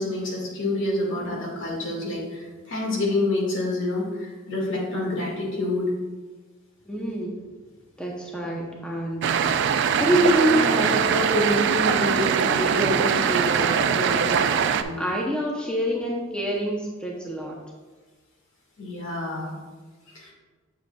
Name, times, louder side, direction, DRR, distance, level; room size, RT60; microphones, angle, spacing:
voice 1, 0.0-5.9 14.8-15.1 18.8-19.5 20.1-20.3, left 2 dB, 65° left, -2 dB, 1.8 m, -28 dB
voice 2, 6.9-7.3 8.0-9.5 10.0-14.7 15.0-17.6, right 1 dB, 5° left, -2 dB, 0.7 m, -26 dB
sound 1, 9.2-14.8, right 7 dB, 60° right, 0.4 m, -22 dB
7.5 x 7.0 x 2.3 m, 1.3 s
head